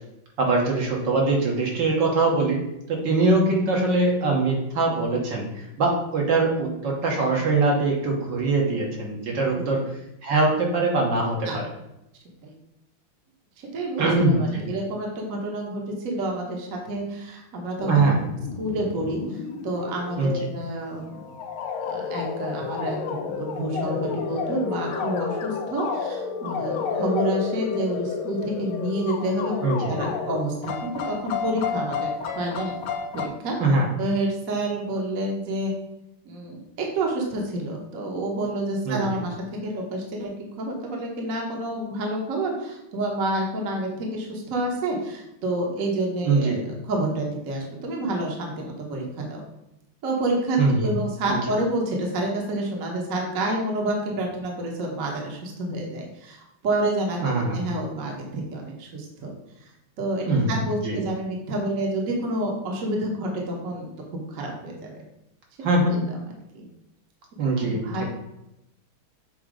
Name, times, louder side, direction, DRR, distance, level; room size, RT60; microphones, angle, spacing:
voice 1, 0.4-2.6 2.9-9.8 10.2-11.7 14.0-14.6 17.9-18.2 20.2-20.3 29.6-30.0 33.6-33.9 38.9-39.2 46.2-46.6 50.6-50.9 51.3-51.4 57.2-57.6 60.3-61.0 65.6-66.0 67.4-68.0, right 3 dB, 60° right, -1 dB, 1.7 m, -22 dB
voice 2, 13.6-18.2 18.6-21.3 21.8-29.5 29.9-32.7 33.1-33.6 34.0-35.7 36.2-40.3 40.6-49.4 50.0-59.3 60.0-65.0 65.8-66.1 66.5-66.7 67.6-68.0, right 1 dB, 45° right, 0 dB, 1.3 m, -29 dB
sound 1, 17.8-33.3, left 6 dB, 85° left, 1.6 m, -31 dB
7.3 x 2.8 x 4.9 m, 0.86 s
omnidirectional pair, 2.3 m